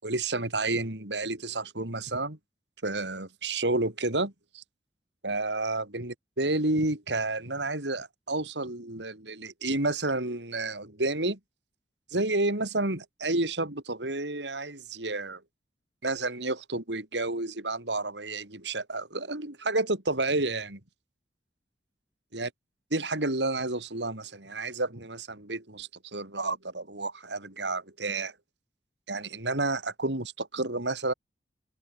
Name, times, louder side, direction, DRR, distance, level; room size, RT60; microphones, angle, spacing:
voice 1, 0.0-2.4 2.8-4.6 5.2-11.4 12.1-15.4 16.0-20.8 22.3-22.5 22.9-28.3 29.1-31.1, right 2 dB, 90° right, 4.3 m, -30 dB
open air
head